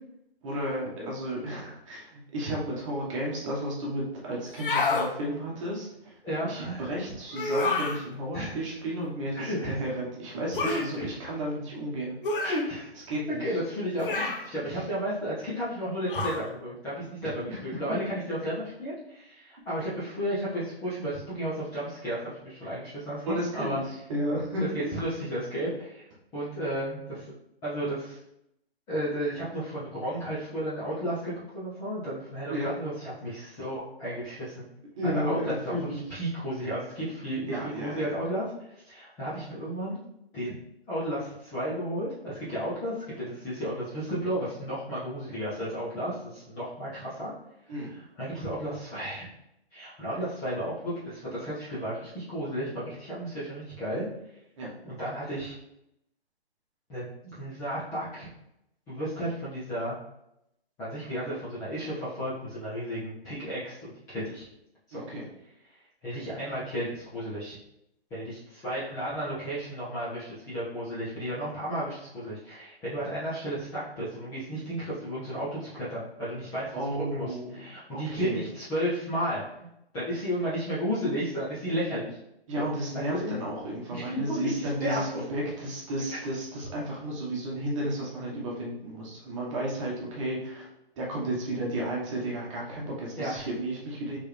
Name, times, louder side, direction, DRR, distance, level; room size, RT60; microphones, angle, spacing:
voice 1, 0.4-6.1 6.5-12.2 13.1-13.4 14.7-14.8 17.5-18.0 23.2-24.9 32.5-32.7 35.0-36.0 37.5-38.1 47.7-47.9 54.6-54.7 64.9-65.2 76.7-78.5 82.5-90.7 91.0-94.2, right 1 dB, 30° right, -3 dB, 1.2 m, -33 dB
sound 1, 4.5-5.1 7.3-8.0 10.5-10.9 12.2-12.6 14.0-14.5 16.1-16.4, left 3 dB, 55° left, 0.9 m, -28 dB
voice 2, 6.2-6.8 8.3-8.5 9.3-9.9 10.6-11.3 12.4-12.9 13.4-23.8 24.6-26.1 26.3-27.3 27.6-28.2 28.9-34.5 35.0-38.5 38.8-40.0 40.3-40.5 40.9-47.3 47.7-49.3 49.7-54.1 54.8-55.6 56.9-58.3 58.9-60.0 60.8-64.4 64.9-65.0 66.0-67.6 68.1-77.3 77.5-79.7 79.9-82.2 82.6-82.7 82.9-83.4 83.9-85.0 86.1-86.2 93.2-93.4, equal, 10° left, -11 dB, 0.7 m, -33 dB
4.3 x 3.4 x 3.2 m, 0.82 s
hypercardioid pair, 150°, 31 cm